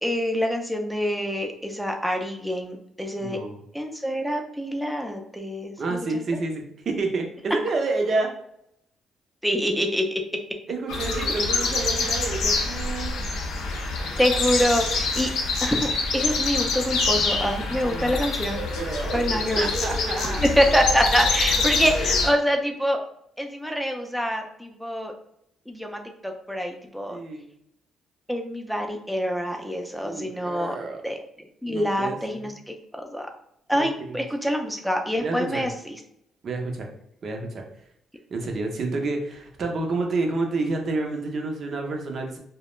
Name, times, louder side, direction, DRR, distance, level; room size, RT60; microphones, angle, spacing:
voice 1, 0.0-3.4 3.7-5.7 9.4-10.2 14.2-15.3 15.6-18.7 19.1-19.7 20.4-23.0 23.4-25.1 25.7-27.2 28.3-30.7 31.0-31.2 31.6-33.3 33.7-36.0, equal, ahead, 2 dB, 0.4 m, -25 dB
voice 2, 3.2-3.6 5.8-8.3 10.7-13.1 17.9-18.2 18.7-19.2 19.6-20.5 27.1-27.5 30.0-31.0 31.6-32.5 33.7-34.2 35.2-35.7 36.4-36.9 37.2-37.6 38.3-42.4, right 3 dB, 55° right, 2 dB, 0.6 m, -29 dB
sound 1, 10.9-22.3, left 3 dB, 85° left, 0.5 m, -25 dB
2.3 x 2.1 x 3.0 m, 0.75 s
cardioid pair, 90°, 0 cm